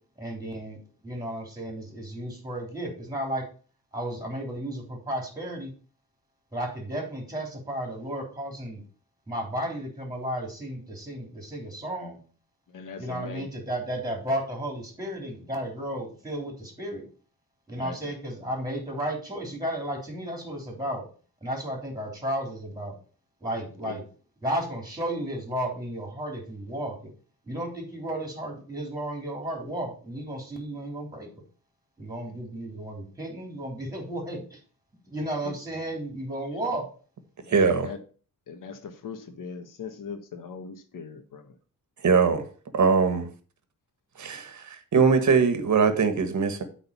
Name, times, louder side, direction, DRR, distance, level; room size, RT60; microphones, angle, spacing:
voice 1, 0.2-3.4 3.9-5.7 6.5-8.8 9.3-12.2 13.0-17.1 17.7-21.0 21.4-22.9 23.4-24.0 24.4-27.1 27.5-31.3 32.0-34.6 35.0-36.9, right 1 dB, 10° right, 3.5 m, -33 dB
voice 2, 12.7-13.5 17.8-18.1 23.8-23.9 35.4-35.6 36.5-36.6 37.4-38.0 38.5-41.6, left 5 dB, 60° left, 1.4 m, -40 dB
voice 3, 37.5-37.9 42.0-42.5 42.7-43.3 44.1-46.6, right 5 dB, 50° right, 1.5 m, -22 dB
8.5 x 4.0 x 6.9 m
wide cardioid pair, 140°, 36 cm